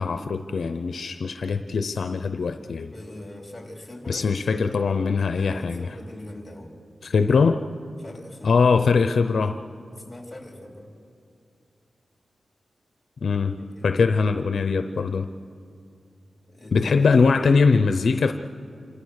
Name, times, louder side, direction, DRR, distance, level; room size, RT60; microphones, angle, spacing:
voice 1, 0.0-2.9 4.1-5.9 7.0-7.6 8.4-9.6 13.2-13.6 13.8-15.3 16.7-18.3, left 4 dB, 55° left, 8 dB, 0.6 m, -21 dB
voice 2, 2.9-4.3 5.5-6.8 8.0-8.6 9.9-10.9 13.6-13.9 16.5-17.1, left 1 dB, 10° left, 1 dB, 3.6 m, -42 dB
27.5 x 25.5 x 6.5 m, 2.5 s
wide cardioid pair, 180°, 0 cm